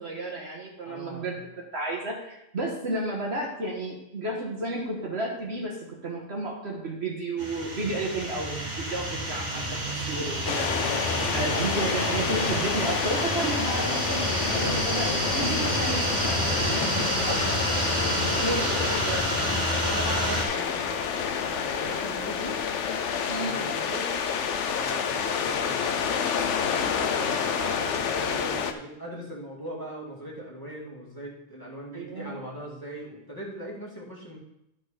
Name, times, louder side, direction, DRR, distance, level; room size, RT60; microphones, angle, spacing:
voice 1, 0.0-1.4 1.7-5.8 6.0-11.0 11.3-16.8 17.2-17.3 17.7-17.8 18.3-19.2 19.6-19.7 23.3-23.6 31.9-32.4, right 2 dB, 55° right, -1 dB, 1.6 m, -32 dB
voice 2, 0.9-1.4 9.5-9.9 10.8-11.5 16.5-17.7 19.6-22.6 23.4-24.1 24.7-34.4, right 1 dB, 15° left, -5 dB, 2.2 m, -40 dB
sound 1, 7.4-20.4, right 1 dB, 35° right, 1.9 m, -29 dB
sound 2, 10.5-28.7, left 7 dB, 65° left, 1.0 m, -29 dB
12.0 x 4.4 x 5.0 m, 0.83 s
omnidirectional pair, 1.4 m